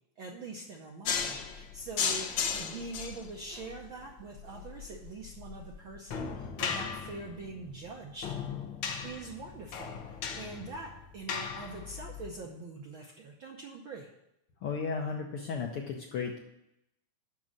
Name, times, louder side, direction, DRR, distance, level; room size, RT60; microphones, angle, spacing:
voice 1, 0.2-8.4 9.0-14.1, right 3 dB, 70° right, 0 dB, 1.2 m, -44 dB
sound 1, 1.0-12.3, left 6 dB, 90° left, 1.0 m, -37 dB
voice 2, 14.6-16.4, left 5 dB, 70° left, 2 dB, 1.3 m, -34 dB
6.7 x 6.1 x 7.5 m, 0.81 s
omnidirectional pair, 3.3 m